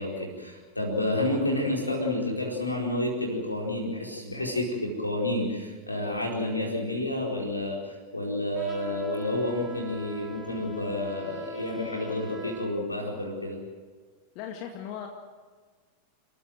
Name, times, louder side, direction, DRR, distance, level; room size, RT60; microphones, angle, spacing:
voice 1, 0.0-13.6, left 1 dB, 85° left, -1 dB, 4.5 m, -30 dB
Trumpet, 8.5-12.8, equal, ahead, 3.0 m, -44 dB
voice 2, 14.3-15.1, left 9 dB, 45° left, 3 dB, 2.1 m, -37 dB
29.5 x 15.0 x 7.8 m, 1.5 s
figure-of-eight pair, 90°, 0 cm